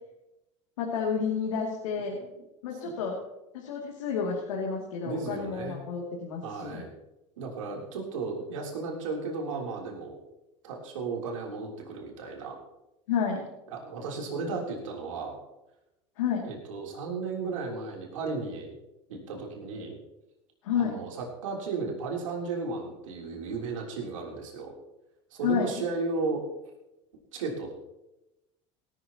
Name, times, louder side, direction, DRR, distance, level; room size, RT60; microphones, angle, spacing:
voice 1, 0.8-2.2 2.6-3.2 3.5-6.8 13.1-13.4 16.2-16.4 20.6-20.9 25.4-25.8, left 6 dB, 85° left, -2 dB, 2.6 m, -30 dB
voice 2, 5.0-5.8 6.4-6.9 7.4-10.2 10.6-12.6 13.7-15.4 16.4-18.8 19.1-20.0 20.8-24.7 25.3-26.5 27.3-27.7, right 4 dB, 90° right, 0 dB, 3.4 m, -34 dB
18.5 x 12.5 x 3.0 m, 0.93 s
hypercardioid pair, 95°, 16 cm